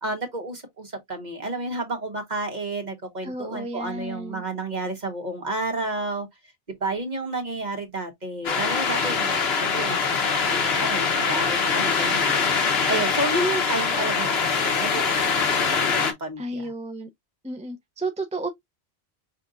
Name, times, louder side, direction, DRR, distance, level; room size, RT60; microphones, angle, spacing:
voice 1, 0.0-6.3 6.7-15.5 15.7-16.7, right 2 dB, 45° right, 1.5 m, -31 dB
voice 2, 3.2-4.4 16.4-17.1 17.4-18.5, right 2 dB, 5° right, 0.7 m, -32 dB
sound 1, 8.4-16.1, left 5 dB, 70° left, 1.3 m, -23 dB
5.8 x 3.5 x 2.5 m
omnidirectional pair, 1.1 m